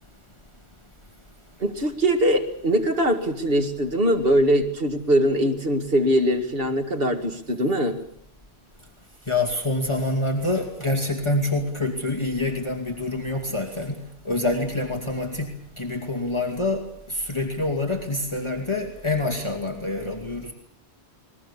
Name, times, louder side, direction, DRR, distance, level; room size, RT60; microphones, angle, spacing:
voice 1, 1.6-8.0, equal, 65° right, 4 dB, 2.4 m, -22 dB
voice 2, 9.3-20.5, left 2 dB, 25° left, 2 dB, 2.6 m, -26 dB
21.5 x 21.5 x 8.4 m, 0.64 s
omnidirectional pair, 1.1 m